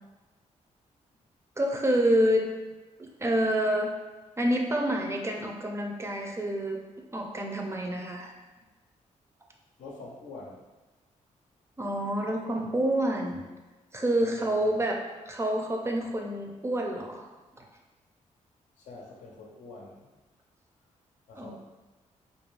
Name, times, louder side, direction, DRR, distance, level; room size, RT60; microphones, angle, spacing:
voice 1, 1.6-2.5 3.0-3.9 4.4-6.8 7.1-8.3 11.8-13.4 13.9-17.3 17.5-17.7 21.4-21.6, right 1 dB, 20° right, 1 dB, 0.4 m, -28 dB
voice 2, 9.8-10.7 14.2-14.7 18.8-20.1 21.3-21.6, left 3 dB, 80° left, -2 dB, 0.6 m, -45 dB
2.4 x 2.2 x 3.1 m, 1.2 s
cardioid pair, 80°, 13 cm